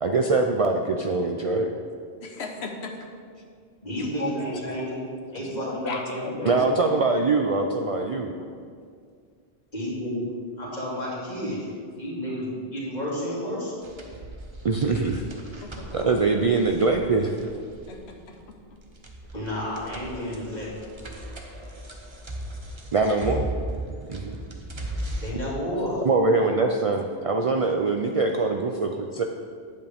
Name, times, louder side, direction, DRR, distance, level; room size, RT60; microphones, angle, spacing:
voice 1, 0.0-1.7 6.5-8.4 14.6-15.2 15.9-17.4 22.9-23.5 24.1-24.4 25.3-25.4 26.0-29.2, right 3 dB, 50° right, 3 dB, 0.4 m, -23 dB
voice 2, 2.2-3.0 3.9-4.6 5.3-6.5 15.6-16.0 17.9-18.4, left 3 dB, 90° left, 3 dB, 1.1 m, -35 dB
voice 3, 3.8-5.0 5.3-6.6 9.7-10.2 10.6-11.6 12.0-13.7 19.3-20.7 25.2-26.0, equal, 45° left, -6 dB, 2.4 m, -31 dB
sound 1, 13.8-25.3, right 1 dB, 30° right, 0.8 m, -37 dB
9.3 x 8.2 x 3.5 m, 2.1 s
omnidirectional pair, 1.1 m